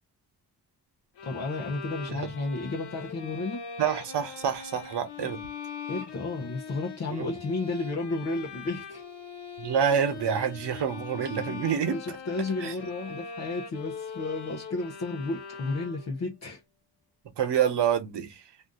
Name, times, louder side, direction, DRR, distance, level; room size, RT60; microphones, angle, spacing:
sound 1, 1.2-16.3, left 6 dB, 80° left, 0.9 m, -41 dB
voice 1, 1.2-3.7 5.9-9.0 11.5-11.6 11.9-16.6, left 2 dB, 40° left, 0.7 m, -32 dB
voice 2, 3.8-5.4 7.1-7.3 9.6-12.2 12.6-12.7 17.4-18.4, right 8 dB, 90° right, 1.0 m, -27 dB
2.5 x 2.5 x 3.5 m
wide cardioid pair, 160°, 40 cm